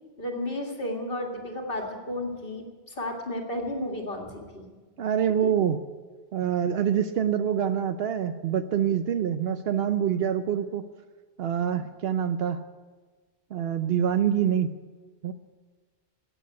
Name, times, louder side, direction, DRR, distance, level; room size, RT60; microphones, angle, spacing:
voice 1, 0.2-4.7, left 1 dB, 60° left, 2 dB, 2.2 m, -33 dB
voice 2, 5.0-5.8 6.3-10.8 11.4-12.6 13.5-14.7 15.2-15.3, right 9 dB, 70° right, 10 dB, 0.9 m, -25 dB
15.0 x 8.7 x 9.5 m, 1.4 s
omnidirectional pair, 1.1 m